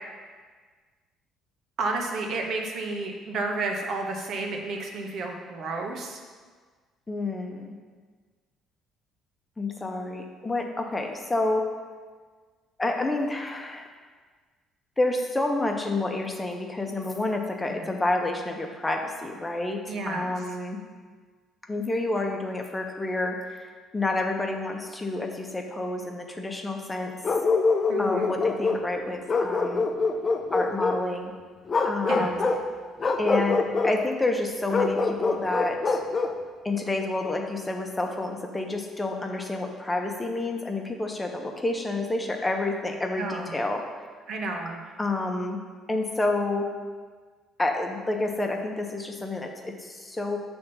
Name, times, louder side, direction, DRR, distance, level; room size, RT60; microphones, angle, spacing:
voice 1, 1.8-6.2 17.6-17.8 19.9-20.3 27.9-28.4 32.1-32.3 43.2-43.5 44.3-44.8, right 3 dB, 60° right, 2 dB, 0.9 m, -31 dB
voice 2, 7.1-7.7 9.6-11.7 12.8-13.9 15.0-20.8 21.7-27.1 28.0-29.9 30.5-31.3 31.8-32.5 33.2-36.0 36.6-43.8 45.0-45.6 45.9-46.7 47.6-50.4, left 2 dB, 20° left, 2 dB, 0.9 m, -29 dB
Bark, 27.2-28.9 29.3-31.0 31.7-32.6 33.0-33.9 34.7-36.4, left 4 dB, 40° left, 0.6 m, -25 dB
6.6 x 3.5 x 5.4 m, 1.5 s
hypercardioid pair, 55°, 0 cm